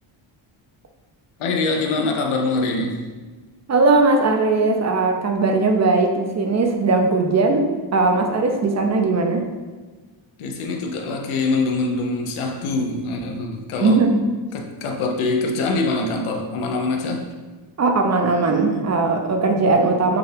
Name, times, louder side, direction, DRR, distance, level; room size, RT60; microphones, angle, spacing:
voice 1, 1.4-3.0 10.4-14.0 14.5-17.3, left 3 dB, 85° left, 3 dB, 0.8 m, -24 dB
voice 2, 3.7-9.5 13.8-14.2 17.8-20.2, right 3 dB, 35° right, 4 dB, 0.6 m, -19 dB
6.9 x 2.3 x 3.3 m, 1.3 s
cardioid pair, 95°, 48 cm